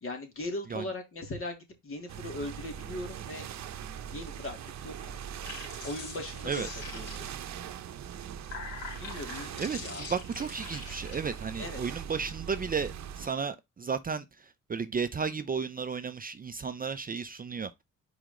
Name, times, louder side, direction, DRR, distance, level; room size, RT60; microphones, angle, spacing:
voice 1, 0.0-1.6 1.8-3.5 4.1-5.2 5.8-7.3 9.0-10.0 11.6-11.8, left 2 dB, 45° left, 2.9 m, -39 dB
sound 1, 2.1-13.3, right 9 dB, 65° right, 0.8 m, -41 dB
sound 2, 5.2-7.5 8.2-11.2, left 5 dB, 75° left, 3.9 m, -44 dB
voice 2, 9.6-17.7, right 5 dB, 30° right, 0.6 m, -33 dB
5.0 x 5.0 x 3.7 m
cardioid pair, 90°, 30 cm